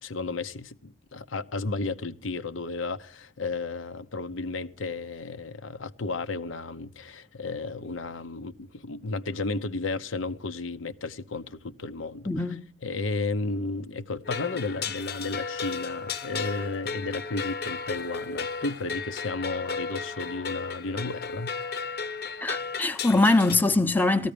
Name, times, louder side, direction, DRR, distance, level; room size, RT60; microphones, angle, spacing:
voice 1, 0.0-12.3 12.8-21.5, left 3 dB, 80° left, 0.9 m, -33 dB
voice 2, 12.3-12.7 22.4-24.3, left 2 dB, 10° left, 0.8 m, -22 dB
sound 1, 14.3-23.6, left 5 dB, 50° left, 1.0 m, -34 dB
18.0 x 14.0 x 5.1 m
head